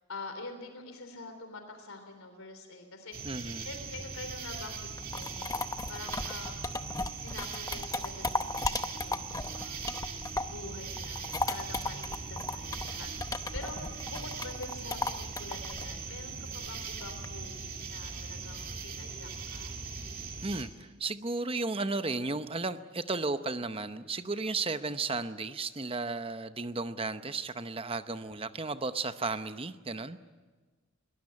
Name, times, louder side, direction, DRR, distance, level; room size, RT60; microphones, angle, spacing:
voice 1, 0.1-5.5 5.9-6.6 7.2-9.9 10.5-13.8 14.1-19.8 24.8-24.9, left 3 dB, 75° left, 6 dB, 3.4 m, -46 dB
sound 1, 3.1-20.6, right 4 dB, 40° right, 2.6 m, -40 dB
voice 2, 3.2-3.7 20.4-30.2, right 3 dB, 25° right, 11 dB, 0.8 m, -34 dB
sound 2, 4.8-10.6 11.0-17.2, left 3 dB, 15° left, 0.7 m, -35 dB
22.5 x 18.5 x 9.7 m, 1.4 s
head